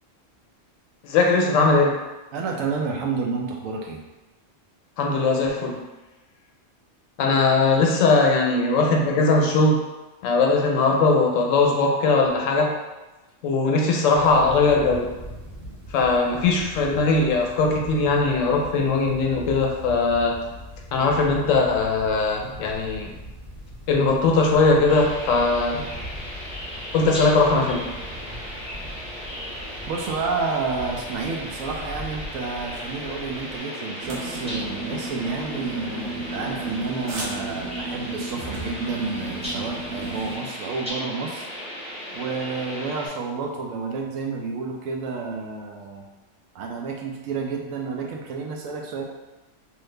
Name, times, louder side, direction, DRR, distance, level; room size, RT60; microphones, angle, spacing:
voice 1, 1.0-2.0 5.0-5.8 7.2-9.8 10.2-12.7 13.4-15.1 15.9-20.4 20.9-23.1 23.9-25.8 26.9-27.9, left 3 dB, 80° left, 1 dB, 0.9 m, -20 dB
voice 2, 2.3-4.0 29.9-41.5 42.1-46.0 46.5-49.0, right 4 dB, 90° right, 1 dB, 1.0 m, -30 dB
sound 1, 14.1-33.6, equal, 30° right, 1.2 m, -40 dB
sound 2, 24.9-43.1, equal, 5° right, 0.5 m, -36 dB
sound 3, 34.0-40.4, right 2 dB, 65° right, 1.0 m, -33 dB
3.1 x 2.4 x 3.2 m, 1.1 s
omnidirectional pair, 1.3 m